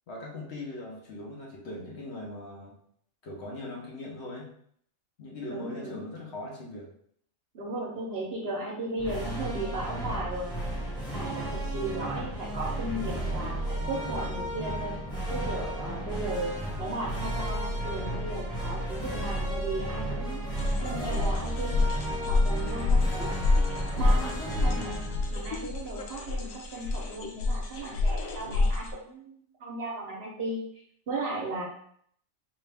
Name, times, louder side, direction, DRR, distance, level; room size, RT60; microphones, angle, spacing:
voice 1, 0.1-2.8 3.2-4.5 5.2-6.9 12.1-12.3, left 2 dB, 60° left, -2 dB, 1.1 m, -40 dB
voice 2, 5.5-6.1 7.5-10.5 11.1-15.0 15.3-16.5 16.8-20.4 20.8-21.8 22.3-23.3 24.0-24.9 25.3-30.6 31.1-31.6, right 2 dB, 50° right, -2 dB, 1.0 m, -36 dB
sound 1, 9.0-26.4, right 1 dB, 5° left, 0.9 m, -33 dB
sound 2, 20.6-28.9, left 3 dB, 85° left, 1.1 m, -28 dB
4.5 x 2.4 x 3.3 m, 0.65 s
omnidirectional pair, 1.4 m